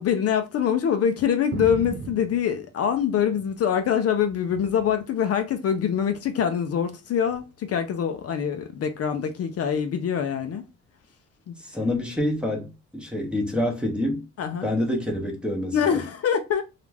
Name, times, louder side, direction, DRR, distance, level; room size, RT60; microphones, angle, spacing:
voice 1, 0.0-10.6 11.5-11.6 14.4-14.7 15.7-16.6, left 8 dB, 55° left, 0.4 m, -24 dB
sound 1, 1.5-3.7 4.1-5.0 5.9-6.3 7.3-7.4, right 5 dB, 40° right, 0.4 m, -38 dB
voice 2, 11.6-14.3 14.6-15.8, left 1 dB, 5° right, 0.7 m, -27 dB
2.4 x 2.1 x 3.2 m
cardioid pair, 90°, 30 cm